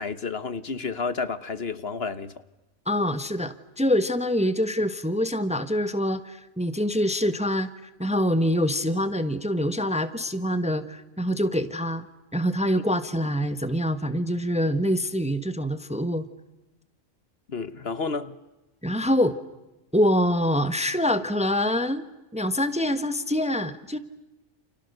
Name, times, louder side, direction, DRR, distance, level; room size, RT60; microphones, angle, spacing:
voice 1, 0.0-2.3 17.5-18.3, left 4 dB, 55° left, 1.4 m, -31 dB
voice 2, 2.9-7.7 8.0-12.1 12.3-16.2 18.8-19.4 19.9-22.1 22.3-24.0, equal, 5° right, 1.1 m, -25 dB
30.0 x 29.5 x 6.7 m
omnidirectional pair, 1.3 m